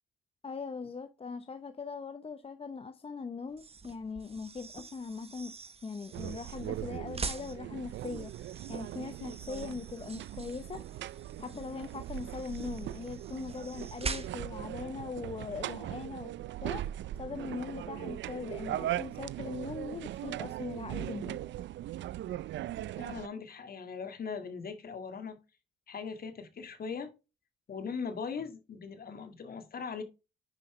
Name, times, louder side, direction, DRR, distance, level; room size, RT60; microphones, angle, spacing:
voice 1, 0.4-5.6 5.8-8.3 8.7-10.8 11.4-16.3 16.6-16.8 17.2-21.4, left 4 dB, 30° left, 0.8 m, -40 dB
sound 1, 3.5-14.7, right 4 dB, 30° right, 1.1 m, -44 dB
sound 2, 6.1-23.3, right 13 dB, 65° right, 0.5 m, -39 dB
voice 2, 23.0-25.4 25.9-27.1 27.7-30.0, left 5 dB, 50° left, 1.9 m, -40 dB
9.8 x 5.6 x 3.2 m
cardioid pair, 90°, 20 cm